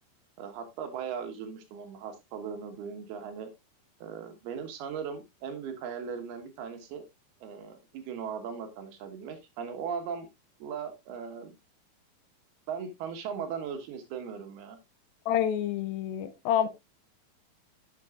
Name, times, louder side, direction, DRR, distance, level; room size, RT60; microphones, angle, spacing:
voice 1, 0.4-3.5 4.0-7.0 7.4-10.3 10.6-11.5 12.7-14.8 16.6-16.7, right 7 dB, 85° right, 3.4 m, -38 dB
voice 2, 15.3-16.7, left 10 dB, 80° left, 2.5 m, -28 dB
11.0 x 7.6 x 2.4 m
omnidirectional pair, 4.4 m